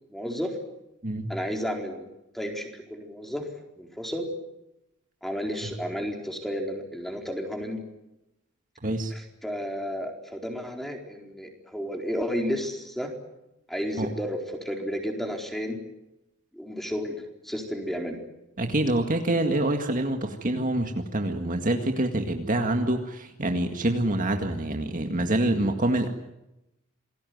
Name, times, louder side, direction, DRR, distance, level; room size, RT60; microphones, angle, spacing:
voice 1, 0.1-0.5 1.3-2.1 2.3-3.5 3.8-4.3 5.2-7.8 9.1-13.1 13.7-15.8 16.5-18.2, equal, ahead, 2 dB, 4.3 m, -32 dB
voice 2, 18.6-26.1, right 1 dB, 40° right, 4 dB, 2.0 m, -26 dB
28.0 x 20.0 x 9.5 m, 0.91 s
head